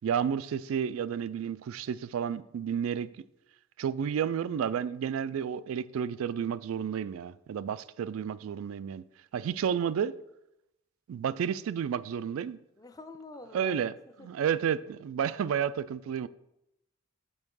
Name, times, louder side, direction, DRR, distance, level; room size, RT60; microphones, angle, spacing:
voice 1, 0.0-3.1 3.8-9.0 9.3-10.1 11.1-12.6 13.5-13.9 14.2-16.3, right 8 dB, 85° right, 0.3 m, -31 dB
voice 2, 12.8-14.3, left 2 dB, 20° left, 0.4 m, -48 dB
5.4 x 4.6 x 6.1 m
head